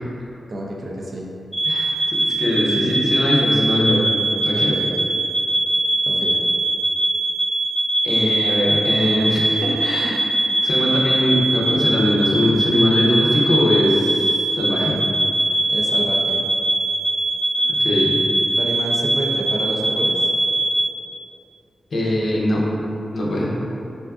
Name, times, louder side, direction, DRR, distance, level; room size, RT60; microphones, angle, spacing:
voice 1, 0.5-1.3 4.5-5.0 6.1-6.4 15.7-16.4 18.6-20.3, right 1 dB, 50° right, -2 dB, 0.4 m, -28 dB
sound 1, 1.5-20.8, right 1 dB, 10° left, 0.6 m, -21 dB
voice 2, 1.6-4.1 4.5-4.8 8.0-10.3 10.6-15.0 17.7-18.1 21.9-22.7 23.1-23.5, left 1 dB, 65° left, -4 dB, 0.5 m, -21 dB
3.4 x 2.4 x 2.3 m, 2.8 s
wide cardioid pair, 100°, 0 cm